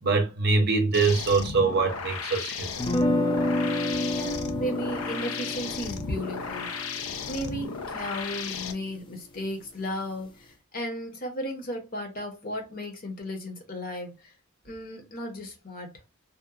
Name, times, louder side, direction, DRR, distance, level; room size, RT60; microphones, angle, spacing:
voice 1, 0.0-2.7, right 4 dB, 50° right, 0.6 m, -23 dB
sound 1, 0.9-8.7, left 5 dB, 80° left, 0.4 m, -35 dB
sound 2, 2.8-8.8, left 1 dB, 25° left, 0.4 m, -30 dB
voice 2, 4.1-14.3 14.6-15.9, equal, 45° left, 0.8 m, -35 dB
2.8 x 2.2 x 2.3 m
head